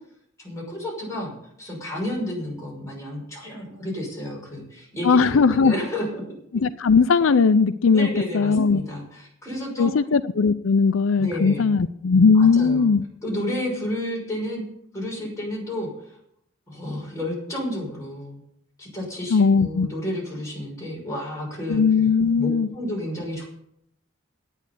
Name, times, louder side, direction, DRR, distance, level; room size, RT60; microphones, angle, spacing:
voice 1, 0.4-6.2 7.9-9.9 11.2-11.7 12.3-12.9 13.2-14.6 14.9-15.9 16.7-18.4 18.8-21.8 22.4-23.5, left 1 dB, 15° left, -3 dB, 6.1 m, -31 dB
voice 2, 5.0-5.7 6.6-8.1 8.3-8.8 9.8-13.0 19.3-19.9 21.7-22.7, left 5 dB, 80° left, 13 dB, 0.5 m, -18 dB
11.0 x 9.2 x 8.4 m, 0.73 s
head